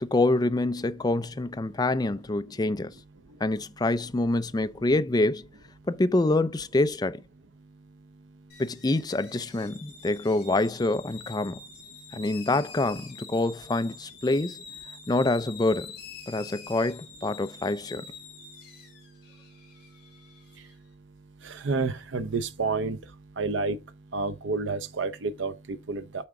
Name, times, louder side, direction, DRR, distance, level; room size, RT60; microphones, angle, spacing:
voice 1, 0.0-2.9 3.4-5.4 5.9-7.2 8.6-11.6 12.1-14.6 15.1-15.9 16.3-18.0, left 2 dB, 20° left, 0.5 m, -26 dB
sound 1, 8.5-20.7, left 5 dB, 60° left, 3.7 m, -47 dB
voice 2, 21.4-23.0 23.4-23.8 24.1-26.2, right 4 dB, 80° right, 0.6 m, -29 dB
8.5 x 4.6 x 3.8 m
head